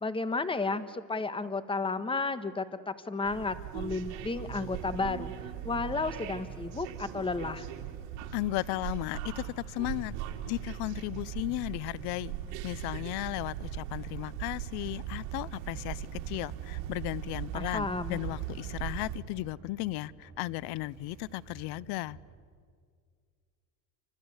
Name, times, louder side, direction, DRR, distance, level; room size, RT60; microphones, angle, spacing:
voice 1, 0.0-5.3 5.6-7.7 17.5-18.2, left 3 dB, 15° left, 12 dB, 1.4 m, -32 dB
sound 1, 3.2-19.2, right 11 dB, 85° right, 2.9 m, -39 dB
voice 2, 8.3-10.1 10.5-12.3 12.6-22.2, left 18 dB, 70° left, 22 dB, 0.8 m, -35 dB
sound 2, 15.5-22.3, right 5 dB, 50° right, 4.7 m, -53 dB
28.5 x 25.5 x 8.1 m, 2.1 s
cardioid pair, 125°, 40 cm